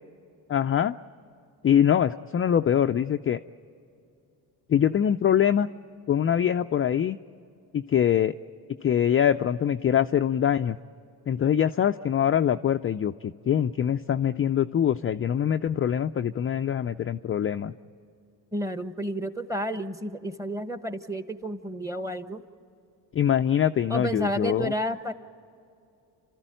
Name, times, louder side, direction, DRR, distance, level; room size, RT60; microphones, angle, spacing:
voice 1, 0.5-0.9 1.6-3.4 4.7-5.7 6.1-7.2 7.7-8.3 8.8-10.8 11.3-17.7 23.1-24.7, left 9 dB, 30° left, 7 dB, 0.4 m, -23 dB
voice 2, 18.5-22.4 23.9-25.1, equal, 5° right, 10 dB, 1.2 m, -31 dB
29.0 x 13.5 x 9.0 m, 2.6 s
supercardioid pair, 70°, 44 cm